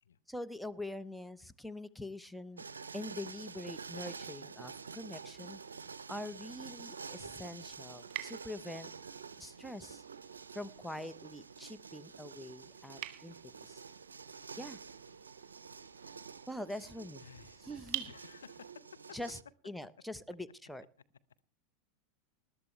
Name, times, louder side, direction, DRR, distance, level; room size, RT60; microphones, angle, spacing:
voice 1, 0.3-2.6 2.9-5.6 6.1-8.9 9.4-10.0 10.5-13.4 13.7-13.8 14.6-14.8 16.5-17.2 17.7-18.1 19.1-19.4 19.6-20.9, left 1 dB, ahead, 12 dB, 0.9 m, -44 dB
sound 1, 2.6-19.4, right 5 dB, 85° right, 0.6 m, -49 dB
sound 2, 5.2-18.7, right 15 dB, 50° right, 1.5 m, -50 dB
voice 2, 17.2-17.7 18.1-19.2, left 7 dB, 80° left, 13 dB, 0.7 m, -54 dB
20.5 x 12.5 x 3.2 m, 0.36 s
hypercardioid pair, 90°, 0 cm